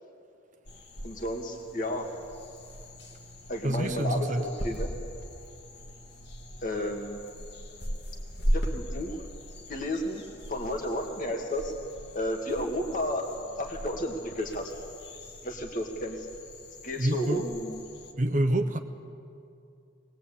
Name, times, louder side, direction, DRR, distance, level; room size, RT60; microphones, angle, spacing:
sound 1, 0.7-18.1, equal, 60° left, 2.1 m, -38 dB
voice 1, 1.0-2.1 3.5-4.9 6.6-7.2 8.5-9.2 9.7-10.2 10.5-11.7 12.1-13.3 13.6-14.7 15.4-16.3 16.8-17.8, left 1 dB, 45° left, 2 dB, 2.0 m, -32 dB
voice 2, 3.6-4.4 17.0-17.5 18.2-18.8, right 1 dB, 40° right, 6 dB, 1.0 m, -27 dB
20.5 x 20.5 x 8.5 m, 2.5 s
head